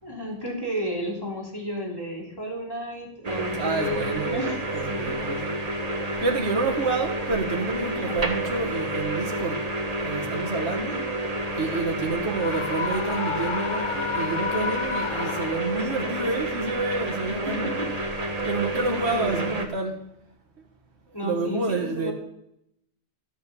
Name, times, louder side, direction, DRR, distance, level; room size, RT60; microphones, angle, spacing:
voice 1, 0.0-5.4 7.8-8.2 10.9-11.1 17.2-17.9 18.7-19.5 21.1-22.1, equal, 20° left, -3 dB, 3.4 m, -33 dB
sound 1, 3.2-19.7, right 1 dB, 35° right, 1.4 m, -29 dB
voice 2, 3.6-4.4 4.7-5.6 6.2-9.6 10.0-11.0 11.6-17.7 18.4-20.0 21.2-22.1, right 3 dB, 65° right, 2 dB, 1.7 m, -29 dB
Screaming, 12.3-16.0, left 6 dB, 55° left, 0.3 m, -31 dB
13.5 x 8.3 x 7.0 m, 0.78 s
omnidirectional pair, 1.2 m